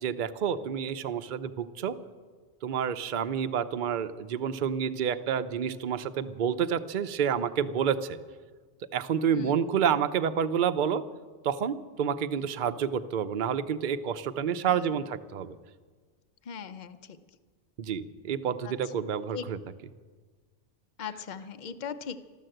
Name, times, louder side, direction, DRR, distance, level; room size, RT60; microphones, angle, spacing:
voice 1, 0.0-2.0 2.6-8.2 8.9-11.0 11.4-15.6 17.8-19.6, right 8 dB, 50° right, 11 dB, 0.7 m, -29 dB
voice 2, 9.3-9.6 14.7-15.0 16.4-17.2 18.6-18.9 19.3-19.4 21.0-22.2, left 6 dB, 45° left, 10 dB, 0.8 m, -40 dB
14.0 x 13.0 x 7.8 m, 1.5 s
omnidirectional pair, 1.2 m